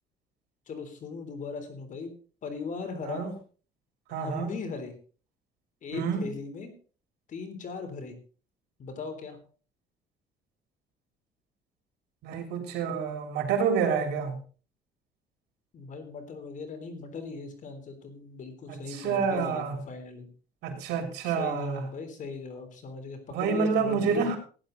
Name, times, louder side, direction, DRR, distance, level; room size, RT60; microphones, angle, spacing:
voice 1, 0.7-2.1 2.4-3.3 4.1-4.9 5.8-6.7 7.3-8.2 8.8-9.4 15.7-20.3 21.2-24.4, left 4 dB, 50° left, 7 dB, 3.5 m, -39 dB
voice 2, 4.1-4.5 5.9-6.3 12.2-14.4 18.7-19.8 20.6-21.8 23.3-24.4, right 6 dB, 80° right, 3 dB, 3.8 m, -28 dB
16.0 x 10.5 x 3.9 m, 0.39 s
cardioid pair, 110°, 17 cm